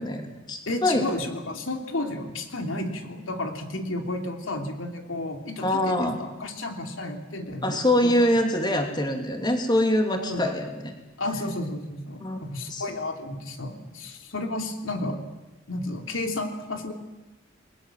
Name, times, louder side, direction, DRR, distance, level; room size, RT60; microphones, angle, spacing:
voice 1, 0.0-1.0 5.6-6.3 7.6-10.9 12.2-12.4 12.7-12.8, left 1 dB, 20° left, 4 dB, 2.9 m, -24 dB
voice 2, 0.7-8.1 10.1-10.4 11.2-15.2 15.7-16.9, left 2 dB, 80° left, 5 dB, 3.1 m, -32 dB
29.5 x 21.0 x 7.6 m, 1.0 s
head